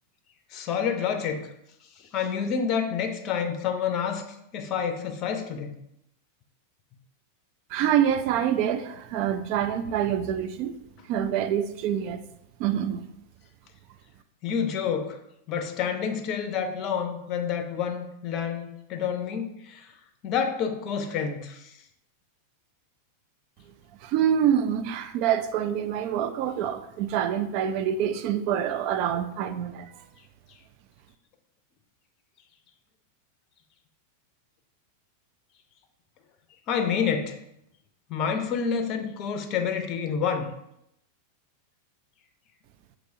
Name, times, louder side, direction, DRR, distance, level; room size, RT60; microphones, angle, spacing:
voice 1, 0.5-1.5 2.1-4.2 4.5-5.8 14.4-15.2 15.5-19.9 20.2-21.7 36.7-37.4 38.1-40.5, left 7 dB, 35° left, 0.5 m, -28 dB
voice 2, 7.7-10.7 11.1-12.2 12.6-13.1 24.0-30.0, right 9 dB, 45° right, 0.3 m, -26 dB
6.0 x 2.9 x 2.7 m
figure-of-eight pair, 90°, 0 cm